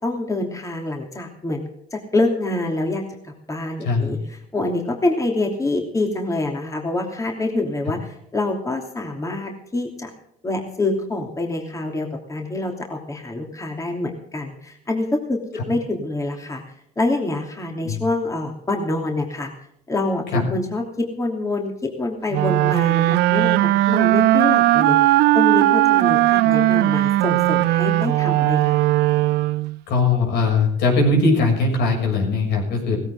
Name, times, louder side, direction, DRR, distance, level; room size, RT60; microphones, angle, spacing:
voice 1, 0.0-4.2 4.5-10.1 10.4-15.4 15.7-16.6 17.0-19.5 19.9-28.9, left 2 dB, 20° left, 2 dB, 3.0 m, -26 dB
voice 2, 3.8-4.1 17.8-18.0 20.3-20.4 29.9-33.0, left 3 dB, 80° left, 1 dB, 6.9 m, -20 dB
sound 1, 22.3-29.8, right 16 dB, 80° right, 0.6 m, -18 dB
17.5 x 16.0 x 3.8 m, 0.72 s
cardioid pair, 110°, 17 cm